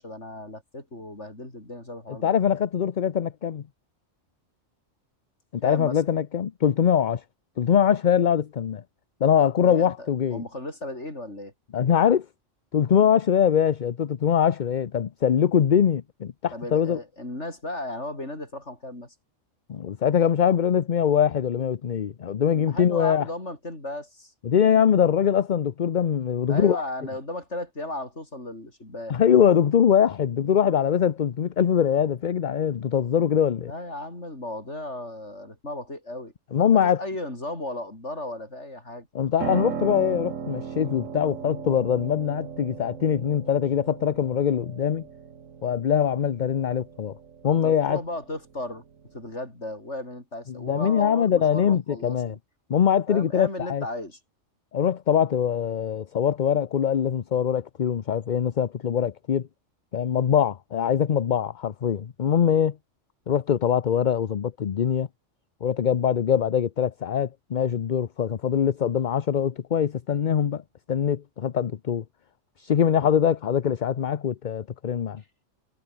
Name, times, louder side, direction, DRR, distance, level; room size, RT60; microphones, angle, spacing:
voice 1, 0.0-2.3 5.6-6.0 9.6-11.5 16.5-19.1 22.5-24.3 26.5-29.2 33.6-36.3 36.7-39.1 47.6-48.8 49.1-52.4 53.1-54.2, left 1 dB, 65° left, 6.8 m, -35 dB
voice 2, 2.2-3.6 5.5-7.2 7.6-8.8 9.2-10.4 11.7-12.3 12.7-17.0 19.7-23.2 24.4-26.8 29.1-33.7 36.5-37.0 39.1-45.1 45.6-47.1 47.4-48.0 50.5-52.3 52.7-53.8 54.7-59.5 59.9-62.7 63.3-65.1 65.6-70.6 70.9-72.0 72.6-75.2, left 8 dB, 45° left, 0.7 m, -23 dB
Piano, 39.4-49.3, right 6 dB, 85° right, 1.8 m, -37 dB
omnidirectional pair, 1.3 m